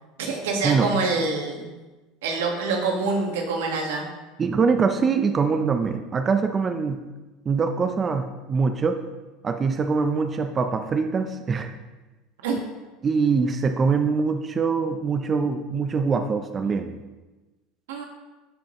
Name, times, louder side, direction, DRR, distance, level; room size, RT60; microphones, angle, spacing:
voice 1, 0.2-1.7 2.2-4.0 12.4-12.6 17.9-18.0, right 3 dB, 90° right, 1 dB, 1.7 m, -26 dB
voice 2, 4.4-7.0 7.5-9.0 9.4-11.7 13.0-17.0, right 5 dB, 30° right, 7 dB, 0.6 m, -23 dB
13.0 x 5.1 x 3.1 m, 1.2 s
supercardioid pair, 105°, 0 cm